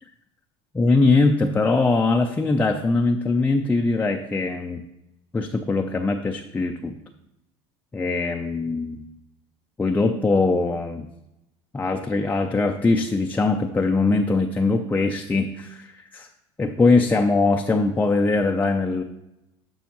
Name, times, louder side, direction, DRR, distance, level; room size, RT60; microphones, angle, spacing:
voice 1, 0.7-4.8 5.3-7.0 7.9-9.0 9.8-11.1 11.7-16.3 16.6-19.0, left 3 dB, 10° left, 2 dB, 0.5 m, -21 dB
12.5 x 5.5 x 3.0 m, 0.90 s
supercardioid pair, 110°, 14 cm